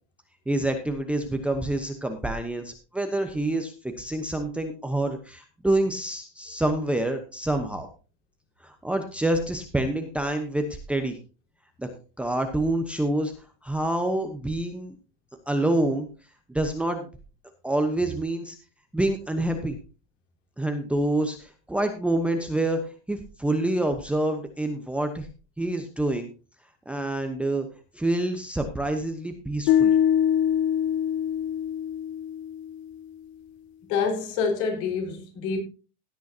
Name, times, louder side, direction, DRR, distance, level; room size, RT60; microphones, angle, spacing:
voice 1, 0.5-7.9 8.6-11.2 11.8-15.0 15.5-16.1 16.5-17.1 17.6-18.6 18.9-19.8 20.6-25.3 25.6-26.3 26.9-27.7 27.9-30.0, right 1 dB, 5° right, 1.0 m, -27 dB
sound 1, 29.7-32.8, left 9 dB, 35° left, 0.4 m, -23 dB
voice 2, 33.9-35.6, left 5 dB, 55° left, 4.9 m, -27 dB
16.5 x 9.3 x 2.8 m
supercardioid pair, 150°, 34 cm